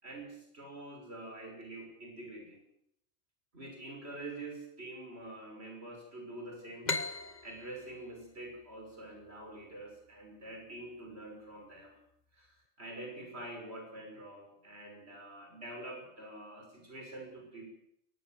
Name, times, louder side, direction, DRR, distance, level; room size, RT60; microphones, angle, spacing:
voice 1, 0.0-2.6 3.5-6.9 7.4-12.0 12.3-17.6, right 2 dB, 65° right, 2 dB, 6.4 m, -46 dB
sound 1, 6.8-10.3, left 4 dB, 40° left, 1.3 m, -39 dB
22.5 x 18.5 x 7.8 m, 0.75 s
omnidirectional pair, 1.2 m